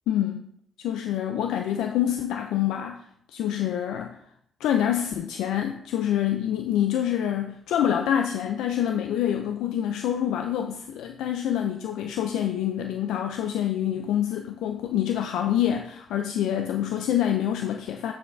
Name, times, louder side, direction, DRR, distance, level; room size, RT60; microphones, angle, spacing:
voice 1, 0.1-0.5 0.8-3.0 3.3-4.2 4.6-18.1, left 10 dB, 85° left, 4 dB, 0.3 m, -26 dB
8.0 x 4.7 x 2.6 m, 0.69 s
cardioid pair, 90°, 0 cm